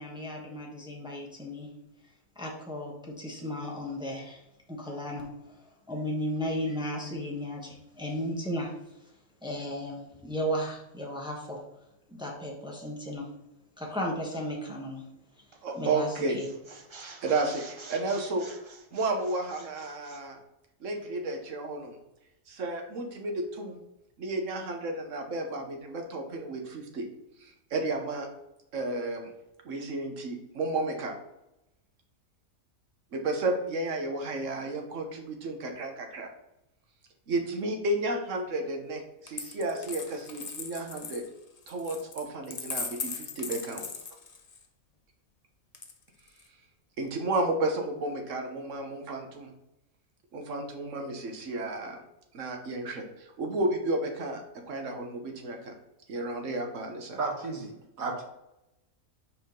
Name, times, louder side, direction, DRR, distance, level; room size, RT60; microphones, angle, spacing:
voice 1, 0.0-1.7 2.3-4.4 4.7-5.6 5.9-8.7 9.4-11.6 12.1-13.3 13.8-15.0 15.4-15.5 15.7-16.5, equal, 5° right, -2 dB, 1.1 m, -35 dB
sound 1, 15.5-15.8 16.1-20.3, right 4 dB, 40° right, 0.4 m, -48 dB
voice 2, 15.6-16.4 17.2-18.5 18.9-20.4 20.8-22.0 22.5-23.8 24.2-27.1 27.4-28.3 28.7-29.3 29.6-31.1 33.1-36.3 37.3-41.2 41.7-43.9 47.0-49.5 50.3-52.0 52.3-55.7 56.1-57.2, right 2 dB, 65° right, 3 dB, 1.4 m, -32 dB
Coin (dropping), 39.3-44.7 45.7-46.5, left 5 dB, 45° left, 0.5 m, -39 dB
voice 3, 57.2-58.2, right 3 dB, 90° right, 1 dB, 1.7 m, -33 dB
5.9 x 4.9 x 3.8 m, 0.88 s
omnidirectional pair, 1.4 m